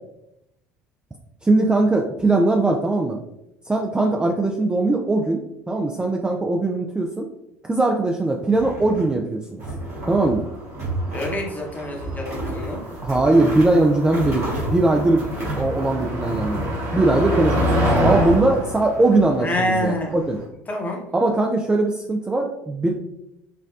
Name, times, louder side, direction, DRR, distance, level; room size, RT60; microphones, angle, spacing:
voice 1, 1.4-3.2 3.7-5.4 5.7-7.3 7.6-9.6 10.1-10.5 13.0-20.4 21.1-22.9, right 2 dB, 10° right, 1 dB, 0.3 m, -20 dB
sound 1, 8.4-9.2 9.6-10.4 10.7-11.4 11.7-16.7 17.1-18.4, right 1 dB, 85° right, 1.4 m, -31 dB
Motor vehicle (road), 10.1-20.4, equal, 45° right, 1.2 m, -27 dB
voice 2, 11.1-12.9 19.4-20.1 20.7-21.0, left 1 dB, 20° left, 0 dB, 0.9 m, -26 dB
4.5 x 2.3 x 2.4 m, 0.84 s
figure-of-eight pair, 65°, 8 cm